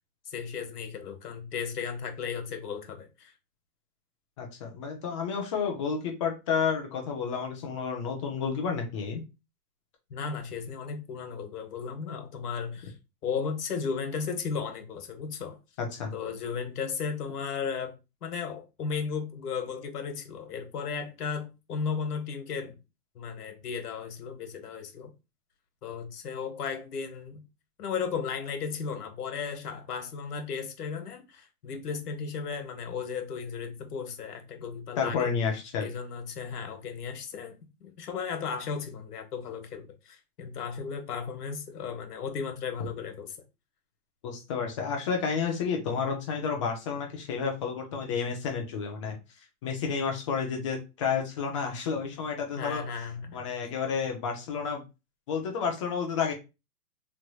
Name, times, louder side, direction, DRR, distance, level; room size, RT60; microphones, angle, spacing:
voice 1, 0.3-3.3 10.1-12.9 13.2-15.6 16.1-22.8 23.1-25.1 25.8-27.4 27.8-35.3 35.8-43.4 52.6-53.4, left 6 dB, 85° left, 1.1 m, -35 dB
voice 2, 4.4-9.2 15.8-16.1 35.0-35.9 44.2-49.2 49.6-52.8 53.3-54.8 55.3-56.3, left 6 dB, 20° left, 0.4 m, -30 dB
3.1 x 2.9 x 2.2 m
hypercardioid pair, 145°, 45 cm